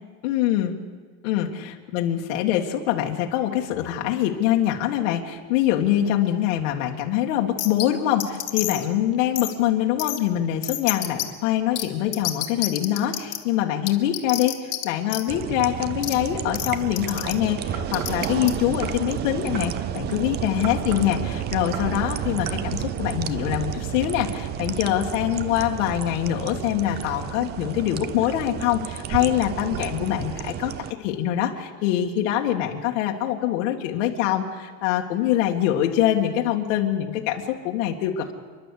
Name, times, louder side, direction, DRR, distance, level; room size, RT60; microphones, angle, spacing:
voice 1, 0.2-0.8 1.2-30.7 31.0-38.3, left 12 dB, 85° left, 1 dB, 1.9 m, -24 dB
sound 1, 7.6-7.9 8.2-8.9 9.4-9.5 10.0-10.2 10.6-11.3 11.8-11.9 12.1-13.4 13.9-14.8 15.1-15.2 16.0-16.1 16.6-16.7 17.0-17.3 17.9-18.5, left 16 dB, 45° left, 1.8 m, -28 dB
sound 2, 15.3-30.9, right 10 dB, 30° right, 0.5 m, -31 dB
sound 3, 17.7-18.2 18.8-19.1 19.5-19.8 20.6-21.2 21.7-22.0 22.5-22.7, right 3 dB, 45° right, 2.3 m, -35 dB
29.5 x 11.5 x 8.5 m, 1.5 s
cardioid pair, 175°, 36 cm